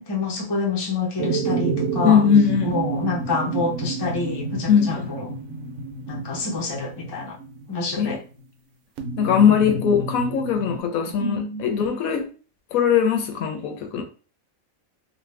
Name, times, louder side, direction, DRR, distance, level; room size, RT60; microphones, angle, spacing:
voice 1, 0.0-2.2 2.6-5.3 6.1-7.4 7.7-8.2 9.4-9.7 11.2-11.6, left 3 dB, 25° left, 0.5 m, -27 dB
sound 1, 1.2-8.0 9.0-10.8, right 4 dB, 70° right, 0.9 m, -29 dB
voice 2, 2.0-2.8 4.7-5.1 8.0-8.2 9.2-12.3 12.7-14.0, left 7 dB, 85° left, 1.1 m, -20 dB
2.6 x 2.4 x 3.3 m
omnidirectional pair, 1.5 m